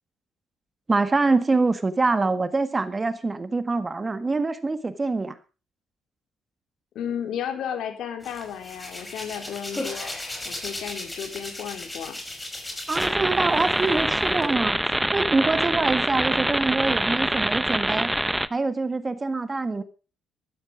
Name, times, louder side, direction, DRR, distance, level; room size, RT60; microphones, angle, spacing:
voice 1, 0.9-5.3 12.9-14.8 15.1-18.1 18.5-19.8, right 3 dB, 25° right, 12 dB, 1.6 m, -25 dB
voice 2, 6.9-10.1 10.4-12.2, left 8 dB, 80° left, 6 dB, 3.9 m, -33 dB
Hands, 8.2-13.2 13.5-14.4, left 1 dB, 15° left, 5.5 m, -36 dB
sound 1, 13.0-18.5, right 1 dB, 5° right, 0.8 m, -25 dB
14.5 x 13.0 x 5.0 m, 0.34 s
cardioid pair, 90°, 0 cm